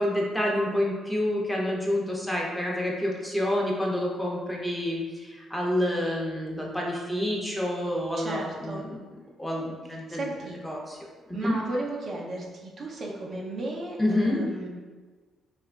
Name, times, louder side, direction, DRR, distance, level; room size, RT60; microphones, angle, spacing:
voice 1, 0.0-9.0 9.4-10.3 10.6-11.0 11.3-11.6 14.0-14.4, left 1 dB, 5° left, -3 dB, 0.7 m, -28 dB
voice 2, 8.2-8.8 10.1-10.6 11.3-14.7, right 2 dB, 55° right, -2 dB, 0.6 m, -34 dB
2.8 x 2.5 x 3.3 m, 1.4 s
cardioid pair, 90°, 0 cm